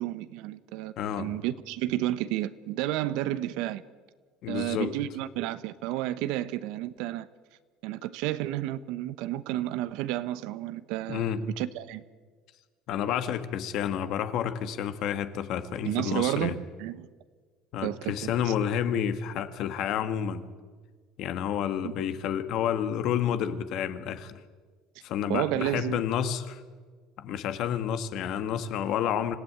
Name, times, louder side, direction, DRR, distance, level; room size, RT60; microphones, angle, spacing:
voice 1, 0.0-3.8 4.5-7.3 7.8-12.0 15.8-17.1 17.8-18.5 21.8-21.9 25.3-26.0, right 14 dB, 75° right, 15 dB, 1.0 m, -31 dB
voice 2, 1.0-1.3 4.4-4.9 11.1-11.4 12.9-16.6 17.7-20.5 21.2-24.4 25.0-26.6 27.2-29.4, left 9 dB, 55° left, 10 dB, 1.8 m, -30 dB
26.0 x 16.5 x 9.5 m, 1.5 s
cardioid pair, 125°, 0 cm